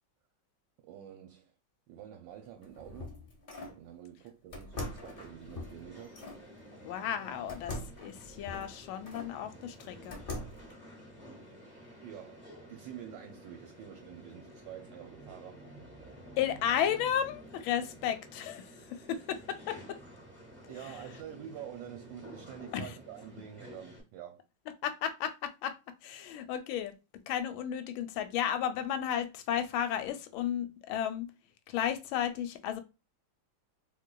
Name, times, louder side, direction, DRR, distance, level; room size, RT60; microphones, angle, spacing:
voice 1, 0.8-1.5 1.9-3.2 3.7-6.2 12.0-15.6 20.7-24.4, right 10 dB, 75° right, 1.2 m, -47 dB
sound 1, 2.5-3.8 4.5-6.4 7.5-9.3 9.8-10.7, left 2 dB, 45° left, 0.7 m, -42 dB
sound 2, 4.7-24.0, equal, 10° right, 0.8 m, -52 dB
voice 2, 6.8-10.2 16.4-20.0 22.7-22.9 24.8-25.7 26.0-27.0 27.3-31.3 31.7-32.8, left 9 dB, 85° left, 1.4 m, -33 dB
3.7 x 3.1 x 2.2 m
omnidirectional pair, 2.1 m